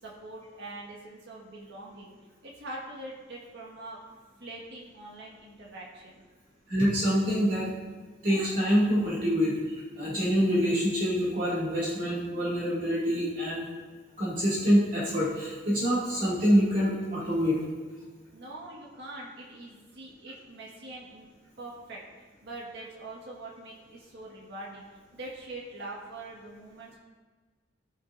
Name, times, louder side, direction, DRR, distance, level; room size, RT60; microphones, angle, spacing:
voice 1, 0.0-2.1 2.4-4.0 4.4-6.2 18.3-21.3 21.6-22.0 22.4-24.8 25.1-27.0, right 2 dB, 60° right, -4 dB, 1.7 m, -43 dB
voice 2, 6.7-7.7 8.2-13.6 14.2-17.6, equal, 45° right, -8 dB, 2.3 m, -26 dB
17.5 x 6.0 x 2.6 m, 1.4 s
head